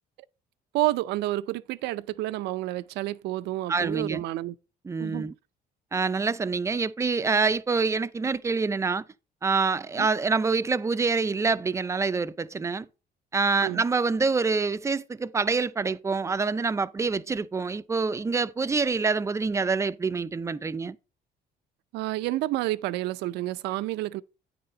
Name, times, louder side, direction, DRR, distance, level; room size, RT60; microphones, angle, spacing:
voice 1, 0.7-4.5 5.0-5.3 10.0-10.1 13.6-13.8 21.9-24.2, right 16 dB, 85° right, 0.5 m, -29 dB
voice 2, 3.7-4.2 4.9-5.3 5.9-9.0 9.4-12.9 13.3-21.0, right 4 dB, 15° right, 0.4 m, -26 dB
9.3 x 4.1 x 5.0 m
cardioid pair, 110°, 17 cm